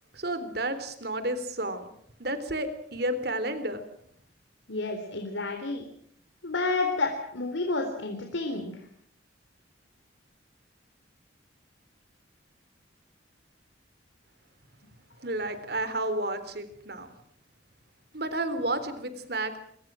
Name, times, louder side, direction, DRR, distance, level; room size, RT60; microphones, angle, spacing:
voice 1, 0.1-1.9 2.2-3.8 15.2-17.1 18.1-19.6, right 1 dB, 55° right, 12 dB, 3.6 m, -31 dB
voice 2, 4.7-5.9 6.4-8.8, left 3 dB, 80° left, 4 dB, 3.6 m, -30 dB
27.0 x 24.0 x 6.3 m, 0.67 s
head